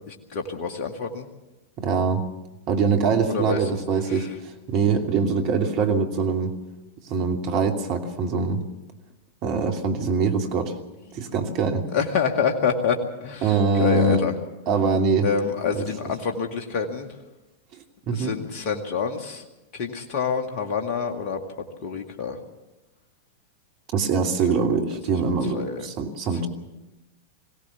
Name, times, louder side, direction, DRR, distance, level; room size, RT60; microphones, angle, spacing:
voice 1, 0.1-1.3 3.3-3.6 4.1-4.3 11.9-14.3 15.2-17.1 18.1-19.4 19.7-22.4 25.5-25.9, left 5 dB, 50° left, 3 dB, 2.0 m, -27 dB
voice 2, 1.8-2.2 2.7-6.5 7.0-8.6 9.4-10.8 11.1-11.8 13.4-14.2 14.7-15.3 15.7-15.8 18.1-18.3 23.9-26.5, right 5 dB, 45° right, 4 dB, 2.8 m, -23 dB
22.0 x 17.0 x 7.1 m, 1.0 s
hypercardioid pair, 95°, 0 cm